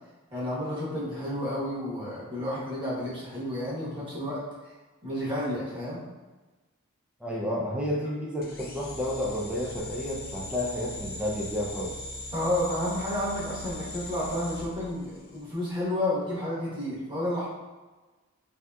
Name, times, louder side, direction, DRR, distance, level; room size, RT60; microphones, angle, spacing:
voice 1, 0.3-4.4 5.0-6.0 12.3-17.5, left 1 dB, 25° right, -9 dB, 1.1 m, -31 dB
voice 2, 7.2-12.0, left 1 dB, 5° right, -4 dB, 0.5 m, -31 dB
sound 1, 8.4-15.5, left 1 dB, 45° left, 0.5 m, -40 dB
3.3 x 2.8 x 2.3 m, 1.2 s
head